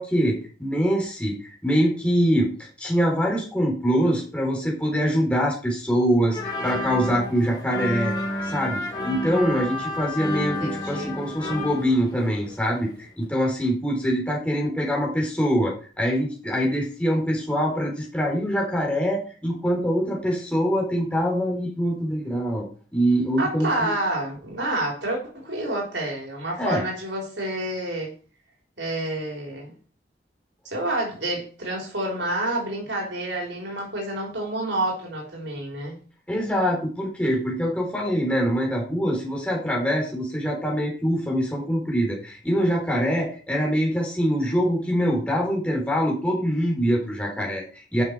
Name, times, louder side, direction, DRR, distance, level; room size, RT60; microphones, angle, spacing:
voice 1, 0.0-8.1 8.4-22.7 22.9-23.9 26.6-26.8 36.3-48.0, equal, 5° left, -1 dB, 4.1 m, -24 dB
sound 1, 6.3-12.9 13.2-13.3, left 1 dB, 20° left, 3.2 m, -31 dB
voice 2, 10.6-11.2 23.4-28.1 28.8-29.7 30.6-36.0, right 1 dB, 85° right, -1 dB, 4.0 m, -29 dB
12.0 x 7.0 x 4.6 m, 0.40 s
head